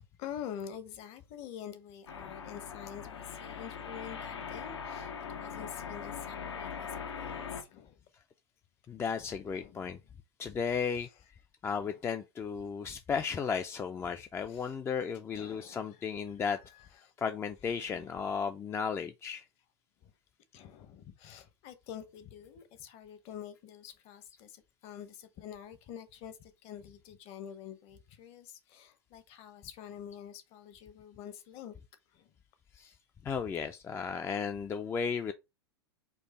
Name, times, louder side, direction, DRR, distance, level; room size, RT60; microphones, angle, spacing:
voice 1, 0.0-8.0 9.4-10.0 11.7-12.0 13.9-14.1 14.5-14.7 15.3-16.1 16.4-17.1 17.7-18.2 20.0-20.1 20.5-31.7 32.1-32.3, left 9 dB, 45° left, 0.9 m, -47 dB
sound 1, 2.1-7.6, left 6 dB, 80° left, 0.8 m, -41 dB
voice 2, 8.9-10.0 10.4-11.1 11.6-16.6 17.2-19.4 32.7-32.9 33.2-35.3, left 6 dB, 20° left, 0.3 m, -34 dB
4.5 x 2.5 x 4.1 m
hypercardioid pair, 100°, 14 cm